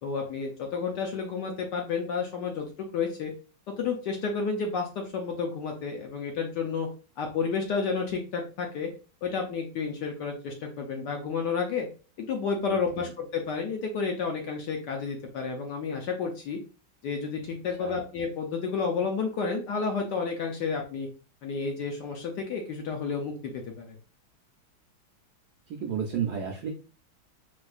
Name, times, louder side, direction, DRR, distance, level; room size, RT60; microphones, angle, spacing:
voice 1, 0.0-3.3 3.8-6.9 7.2-8.9 9.2-11.9 12.2-16.6 17.0-21.1 21.4-23.9, left 5 dB, 70° left, 2 dB, 1.0 m, -31 dB
voice 2, 12.7-13.1 17.7-18.0 25.7-26.7, right 7 dB, 75° right, 0 dB, 0.9 m, -33 dB
4.3 x 2.4 x 2.3 m, 0.34 s
omnidirectional pair, 2.3 m